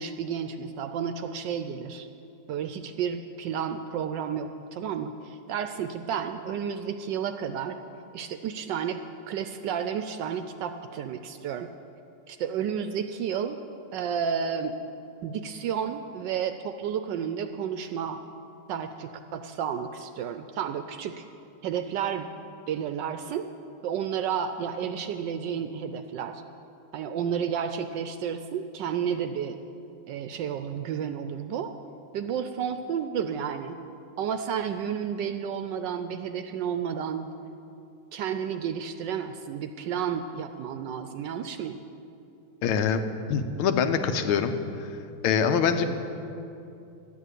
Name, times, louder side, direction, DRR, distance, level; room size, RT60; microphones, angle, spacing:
voice 1, 0.0-2.1 2.5-7.8 8.1-11.7 12.3-13.6 13.9-14.8 15.2-18.2 18.7-21.2 21.6-22.3 22.7-23.5 23.8-26.4 26.9-29.6 30.1-31.7 32.1-33.8 34.2-37.3 38.1-41.8, right 7 dB, 75° right, 8 dB, 1.1 m, -31 dB
voice 2, 42.6-43.0 43.3-44.6 45.2-46.0, left 6 dB, 90° left, 8 dB, 1.6 m, -24 dB
11.5 x 8.4 x 8.1 m, 2.7 s
omnidirectional pair, 2.3 m